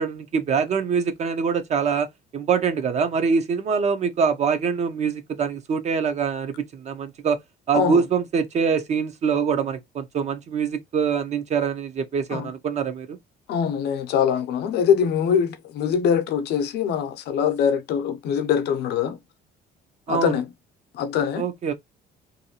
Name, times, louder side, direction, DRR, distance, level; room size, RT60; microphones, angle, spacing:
voice 1, 0.0-2.1 2.3-7.4 7.7-13.2 20.1-20.3 21.4-21.7, right 6 dB, 40° right, 0.4 m, -24 dB
voice 2, 13.5-19.2 20.1-20.4 20.9-21.4, left 8 dB, 75° left, 0.6 m, -23 dB
2.6 x 2.2 x 2.7 m
cardioid pair, 110°, 17 cm